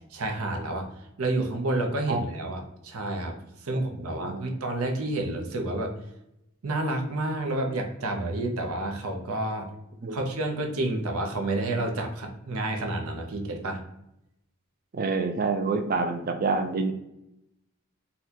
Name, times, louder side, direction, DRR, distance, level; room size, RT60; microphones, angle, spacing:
voice 1, 0.1-0.9 1.2-5.9 6.6-9.7 10.1-13.8, right 2 dB, 75° right, 3 dB, 0.7 m, -29 dB
voice 2, 4.1-4.5 10.0-10.2 14.9-16.9, right 4 dB, 40° right, 6 dB, 0.4 m, -27 dB
4.0 x 2.2 x 2.8 m, 0.83 s
head